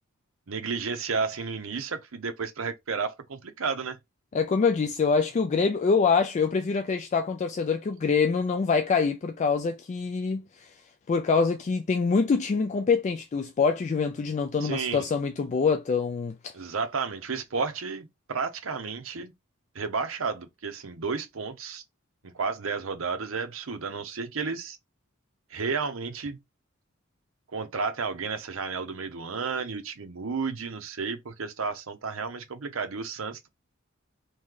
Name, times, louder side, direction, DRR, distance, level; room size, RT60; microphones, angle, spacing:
voice 1, 0.5-4.0 14.6-15.1 16.5-19.3 19.7-21.8 22.2-24.8 25.5-26.4 27.5-33.5, right 5 dB, 70° right, 0.7 m, -32 dB
voice 2, 4.3-10.7 11.1-16.5, left 5 dB, 35° left, 0.3 m, -25 dB
3.1 x 2.8 x 3.7 m
head